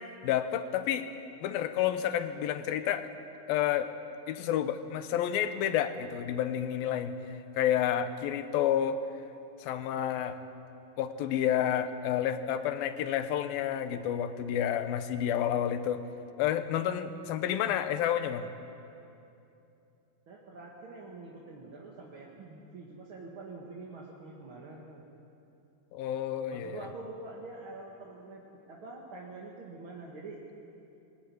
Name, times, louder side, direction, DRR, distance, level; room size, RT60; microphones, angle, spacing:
voice 1, 0.2-1.1 1.4-3.1 3.5-3.9 4.3-7.2 7.6-9.0 9.6-10.4 11.0-16.0 16.4-18.5 25.9-26.8, left 10 dB, 90° left, 10 dB, 2.8 m, -30 dB
voice 2, 20.3-25.0 26.5-30.4, right 3 dB, 45° right, -3 dB, 2.2 m, -45 dB
21.0 x 17.5 x 9.8 m, 2.7 s
omnidirectional pair, 4.1 m